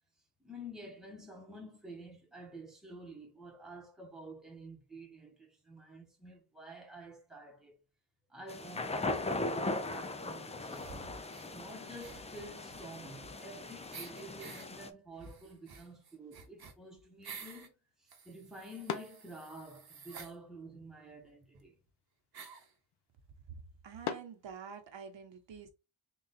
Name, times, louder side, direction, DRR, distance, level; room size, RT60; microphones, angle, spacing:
voice 1, 0.4-7.8 8.3-11.2 11.5-17.7 18.0-21.8, right 1 dB, ahead, 0.9 m, -50 dB
sound 1, 8.5-14.9, left 2 dB, 15° left, 0.3 m, -39 dB
sound 2, 10.7-11.5 12.0-13.6 13.9-14.7 15.2-17.7 18.1-20.3 21.2-21.3 21.5-21.6 22.3-22.7, right 5 dB, 50° right, 0.9 m, -51 dB
sound 3, 15.1-25.2, left 8 dB, 55° left, 0.6 m, -48 dB
voice 2, 23.5-25.7, right 6 dB, 65° right, 1.0 m, -48 dB
3.9 x 2.4 x 4.0 m
wide cardioid pair, 145°, 47 cm